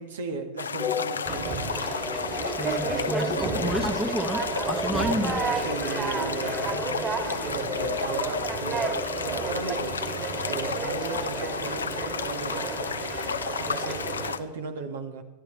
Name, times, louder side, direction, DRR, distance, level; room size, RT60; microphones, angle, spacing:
voice 1, 0.0-1.8 2.2-2.3 2.8-3.9 4.9-5.1 5.6-7.0 7.5-10.0 10.5-12.9 13.6-15.2, right 5 dB, 60° right, 6 dB, 1.8 m, -36 dB
sound 1, 0.6-14.4, left 6 dB, 70° left, 0.8 m, -33 dB
sound 2, 0.8-9.9, left 8 dB, 30° left, 1.1 m, -37 dB
Conversation, 1.3-14.3, right 4 dB, 25° right, 2.8 m, -32 dB
voice 2, 2.5-5.4, equal, 5° right, 8 dB, 1.2 m, -31 dB
27.5 x 13.0 x 3.4 m, 1.1 s
figure-of-eight pair, 90°, 0 cm